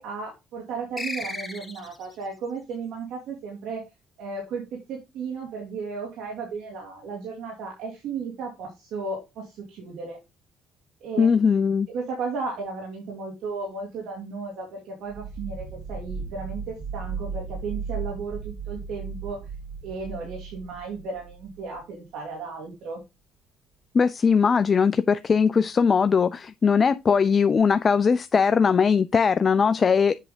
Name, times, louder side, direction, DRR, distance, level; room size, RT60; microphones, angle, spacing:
voice 1, 0.0-3.9 4.2-10.2 11.0-11.3 11.9-19.4 19.8-23.0, right 4 dB, 80° right, 2.4 m, -34 dB
sound 1, 1.0-2.2, left 2 dB, 10° left, 1.6 m, -34 dB
voice 2, 11.2-11.9 23.9-30.1, left 6 dB, 40° left, 0.4 m, -20 dB
sound 2, 15.1-21.8, right 5 dB, 15° right, 1.9 m, -36 dB
7.6 x 3.5 x 5.1 m
cardioid pair, 85°, 0 cm